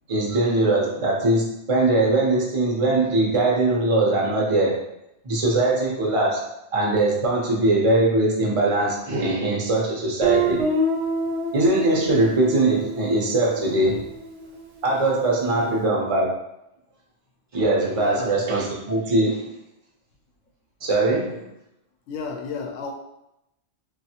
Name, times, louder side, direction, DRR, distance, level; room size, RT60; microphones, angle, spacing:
voice 1, 0.1-4.9 5.2-10.7 11.5-14.0 14.8-16.4 17.5-19.5 20.8-21.5, right 2 dB, 35° right, -2 dB, 0.6 m, -21 dB
Guitar, 10.2-14.9, right 2 dB, 65° right, 0.8 m, -27 dB
voice 2, 15.4-15.9 17.9-18.4 22.1-22.9, left 4 dB, 90° left, 3 dB, 0.9 m, -34 dB
3.2 x 2.4 x 2.8 m, 0.84 s
omnidirectional pair, 1.2 m